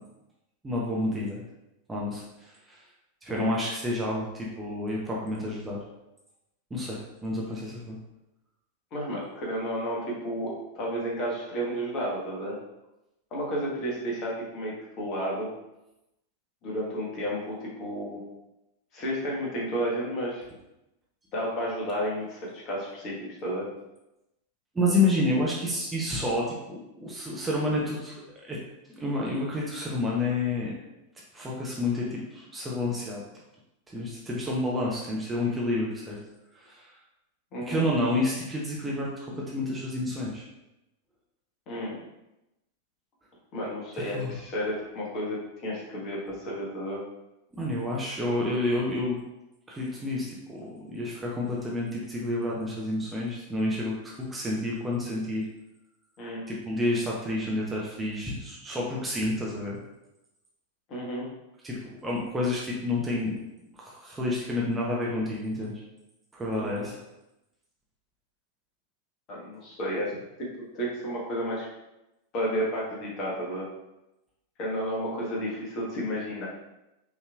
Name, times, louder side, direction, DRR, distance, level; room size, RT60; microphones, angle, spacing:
voice 1, 0.6-1.4 1.9-2.8 3.2-5.8 6.7-8.0 24.7-28.1 28.4-28.6 29.0-30.7 31.3-33.2 33.9-36.2 36.5-36.9 37.7-40.5 43.9-44.3 47.6-49.2 49.7-55.5 56.5-59.8 61.6-63.4 63.7-65.8 66.3-67.0, left 2 dB, 10° right, -4 dB, 0.8 m, -29 dB
voice 2, 8.9-12.6 13.3-15.5 16.6-18.2 18.9-20.4 21.3-23.7 37.5-37.8 41.7-42.0 43.5-47.0 56.2-56.4 60.9-61.3 66.6-66.9 69.3-70.5 70.7-71.6 72.3-73.7 74.6-76.4, equal, 35° left, -4 dB, 1.5 m, -32 dB
5.3 x 3.2 x 2.4 m, 0.93 s
figure-of-eight pair, 90°, 0 cm